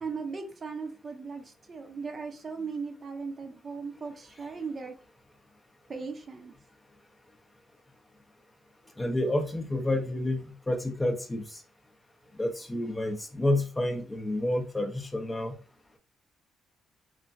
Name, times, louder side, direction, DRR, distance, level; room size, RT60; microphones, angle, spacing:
voice 1, 0.0-4.9 5.9-6.5, right 4 dB, 40° right, 0.6 m, -38 dB
voice 2, 9.0-11.6 12.4-15.5, left 1 dB, 15° left, 0.5 m, -29 dB
3.1 x 2.2 x 2.5 m
cardioid pair, 95°, 0 cm